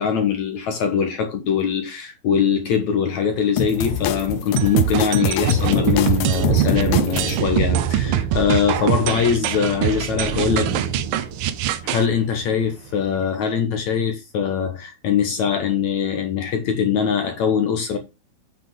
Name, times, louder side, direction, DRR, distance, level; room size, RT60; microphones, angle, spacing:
voice 1, 0.0-10.9 11.8-18.0, left 7 dB, 60° left, 2.2 m, -22 dB
Thunder, 3.3-13.3, right 6 dB, 55° right, 3.6 m, -29 dB
sound 1, 3.6-7.4, left 8 dB, 85° left, 2.7 m, -25 dB
sound 2, 4.6-12.1, right 11 dB, 75° right, 2.2 m, -23 dB
8.5 x 8.1 x 3.7 m
omnidirectional pair, 4.4 m